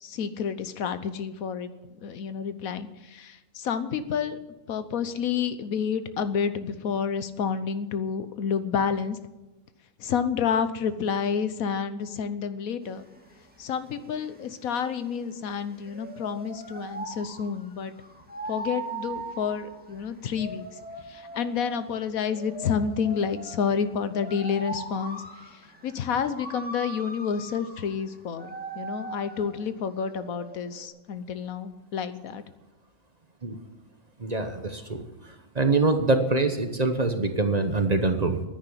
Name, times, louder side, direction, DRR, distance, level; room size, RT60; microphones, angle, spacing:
voice 1, 0.0-1.7 2.0-4.4 4.7-9.2 10.0-13.1 13.6-17.9 18.5-20.7 21.1-25.2 25.8-32.4, left 6 dB, 90° left, 12 dB, 1.4 m, -29 dB
sound 1, 12.8-30.9, right 2 dB, 5° right, 1.7 m, -40 dB
voice 2, 34.2-35.0 35.5-38.4, right 3 dB, 35° right, 7 dB, 1.0 m, -24 dB
10.0 x 10.0 x 9.8 m, 1.1 s
omnidirectional pair, 1.4 m